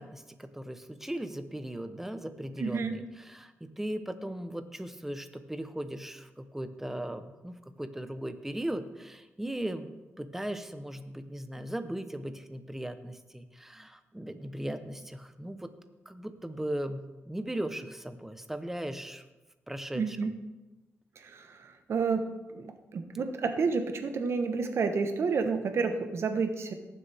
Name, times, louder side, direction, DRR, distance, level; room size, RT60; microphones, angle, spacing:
voice 1, 0.0-15.7 16.1-19.2 19.7-20.3, right 1 dB, 5° right, 9 dB, 0.8 m, -38 dB
voice 2, 2.6-3.0 19.9-20.3 21.2-22.3 22.5-26.7, right 5 dB, 65° right, 7 dB, 1.1 m, -30 dB
18.5 x 7.5 x 3.5 m, 1.1 s
cardioid pair, 95°, 5 cm